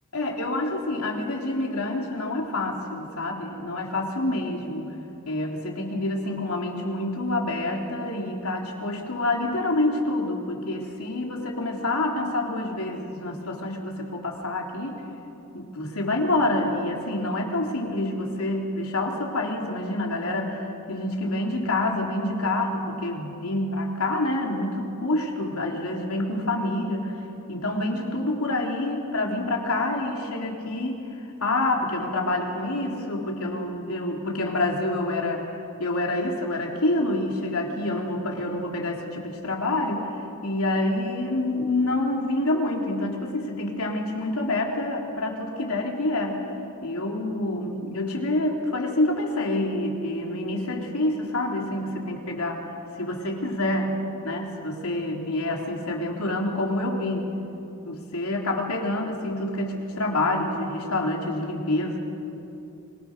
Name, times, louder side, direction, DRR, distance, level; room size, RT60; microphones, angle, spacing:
voice 1, 0.1-4.9 5.2-15.0 15.5-27.1 27.5-31.0 31.4-40.1 40.4-46.5 46.8-52.6 53.0-53.9 54.2-57.3 57.8-62.0, left 2 dB, 80° left, 0 dB, 3.4 m, -27 dB
26.5 x 22.5 x 6.7 m, 2.8 s
head